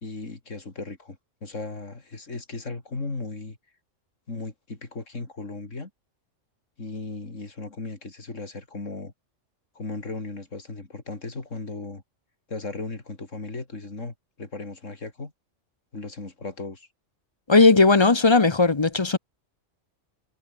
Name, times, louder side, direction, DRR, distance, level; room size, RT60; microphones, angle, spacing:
voice 1, 0.0-3.6 4.3-5.9 6.8-9.1 9.8-12.0 12.5-15.3 15.9-16.9, left 3 dB, 85° left, 3.8 m, -36 dB
voice 2, 17.5-19.2, left 3 dB, 25° left, 0.8 m, -17 dB
omnidirectional pair, 1.3 m